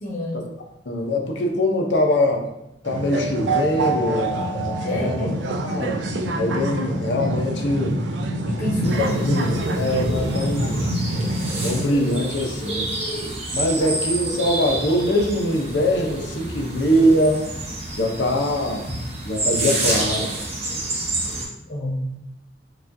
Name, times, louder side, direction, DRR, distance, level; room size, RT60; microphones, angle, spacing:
voice 1, 0.0-0.5 4.8-5.4 8.4-9.3 21.7-22.1, left 1 dB, 45° left, -6 dB, 0.9 m, -29 dB
voice 2, 0.9-2.5 2.8-5.3 5.6-6.0 6.4-8.0 8.8-8.9 9.2-10.8 11.6-12.9 13.5-17.5 18.0-18.9 19.2-20.3, equal, 80° left, 2 dB, 0.7 m, -22 dB
sound 1, 2.9-11.8, right 1 dB, 80° right, 0.4 m, -26 dB
sound 2, 8.8-21.5, right 2 dB, 40° right, 0.9 m, -29 dB
4.7 x 2.4 x 2.6 m, 0.88 s
head